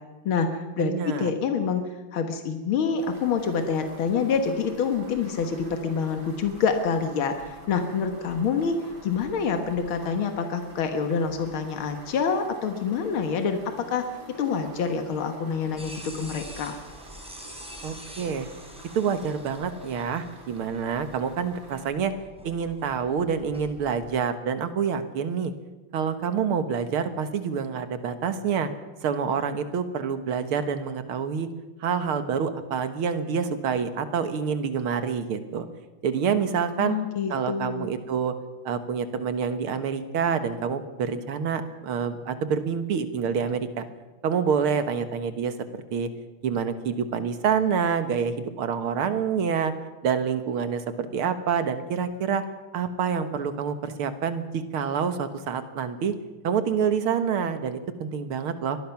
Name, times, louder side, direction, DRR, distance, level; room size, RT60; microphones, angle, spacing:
voice 1, 0.3-8.8 9.0-14.1 14.4-16.8 36.8-37.9, left 6 dB, 75° left, 6 dB, 2.3 m, -27 dB
voice 2, 0.8-1.3 17.8-18.5 18.9-22.1 22.4-25.5 25.9-28.7 29.0-31.5 31.8-35.7 36.0-37.0 37.3-38.3 38.7-43.8 44.2-45.5 45.9-46.1 46.4-49.7 50.0-52.4 52.7-56.1 56.4-58.8, right 6 dB, 85° right, 10 dB, 2.3 m, -27 dB
sound 1, 3.0-21.9, right 2 dB, 65° right, 5.0 m, -48 dB
sound 2, 15.8-24.1, equal, 5° right, 3.8 m, -46 dB
24.0 x 19.0 x 5.9 m, 1.2 s
omnidirectional pair, 2.3 m